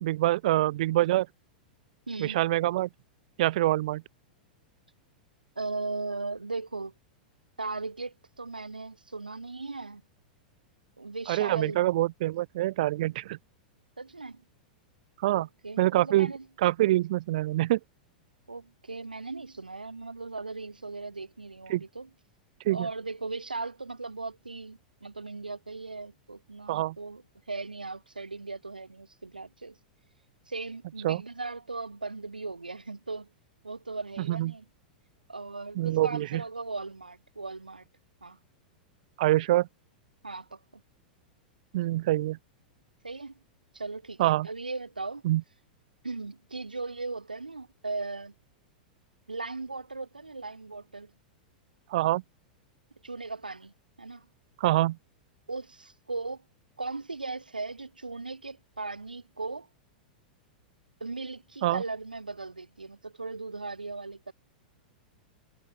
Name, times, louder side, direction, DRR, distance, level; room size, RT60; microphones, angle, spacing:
voice 1, 0.0-1.3 2.2-2.9 3.4-4.0 11.3-13.4 15.2-15.5 15.8-16.3 16.6-17.8 21.7-21.8 22.7-22.9 26.7-27.0 31.0-31.2 34.2-34.5 35.8-36.4 39.2-39.7 41.7-42.4 44.2-44.5 45.2-45.4 51.9-52.2 54.6-55.0 61.6-61.8, right 15 dB, 60° right, 0.5 m, -25 dB
voice 2, 2.1-2.4 5.6-6.9 7.6-10.0 11.0-11.8 14.0-14.4 15.3-16.5 18.5-22.1 22.7-27.2 27.5-29.8 30.5-33.3 33.6-34.7 35.3-37.8 38.2-38.4 40.2-40.8 43.0-43.3 43.7-45.2 46.0-48.3 49.3-51.1 53.0-54.3 55.5-56.4 56.8-59.7 61.0-64.3, right 3 dB, 90° right, 2.5 m, -38 dB
figure-of-eight pair, 100°, 5 cm